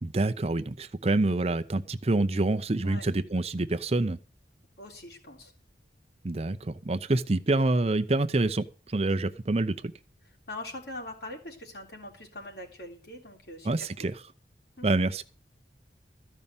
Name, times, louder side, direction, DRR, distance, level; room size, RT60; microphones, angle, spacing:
voice 1, 0.0-4.2 6.2-9.9 13.6-14.2 14.8-15.2, right 2 dB, 35° right, 0.6 m, -27 dB
voice 2, 4.8-5.5 7.1-7.2 10.5-14.1 14.8-14.9, left 1 dB, 65° left, 3.5 m, -42 dB
14.0 x 5.5 x 8.8 m
head